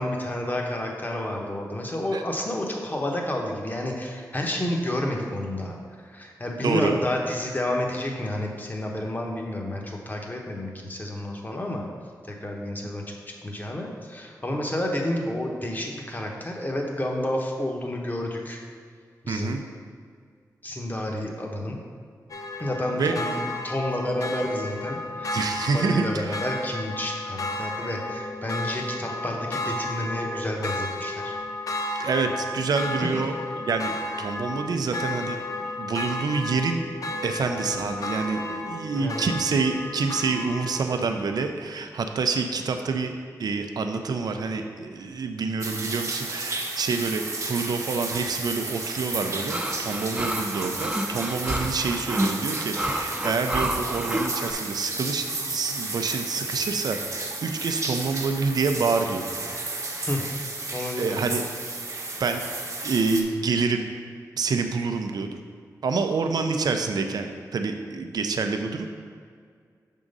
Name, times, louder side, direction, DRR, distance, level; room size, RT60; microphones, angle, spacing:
voice 1, 0.0-5.8 6.1-11.9 12.2-13.0 13.4-18.6 19.2-19.6 20.6-21.8 22.6-25.4 25.7-31.3 33.1-33.2 38.9-39.3 60.0-60.2 60.7-61.4, left 1 dB, 25° left, 0 dB, 1.0 m, -30 dB
voice 2, 6.6-7.0 14.5-14.6 19.3-19.6 23.0-23.1 25.3-26.4 32.0-33.9 34.2-35.4 35.8-36.8 37.2-43.1 43.4-59.2 61.0-61.4 62.2-62.4 62.8-63.9 64.4-65.3 65.8-68.9, right 4 dB, 80° right, 5 dB, 0.5 m, -27 dB
sound 1, 22.3-41.1, left 2 dB, 60° left, 0.6 m, -33 dB
sound 2, 45.6-63.2, right 3 dB, 50° right, 0.9 m, -33 dB
sound 3, 49.5-54.5, right 1 dB, 15° right, 0.6 m, -29 dB
6.1 x 3.8 x 5.3 m, 2.1 s
cardioid pair, 60°, 7 cm